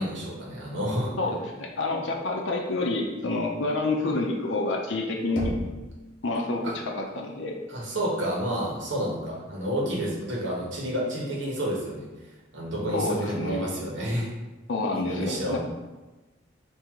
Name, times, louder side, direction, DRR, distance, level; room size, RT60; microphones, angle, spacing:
voice 1, 0.0-1.1 6.6-6.7 7.7-12.1 12.5-14.3 14.9-15.6, equal, 70° right, -4 dB, 1.2 m, -30 dB
voice 2, 1.2-5.5 6.2-7.5 12.9-13.7 14.7-15.6, left 2 dB, 70° left, 0 dB, 0.6 m, -28 dB
Knock, 5.4-6.3, left 1 dB, 45° left, 0.8 m, -34 dB
3.7 x 2.7 x 4.6 m, 1.2 s
head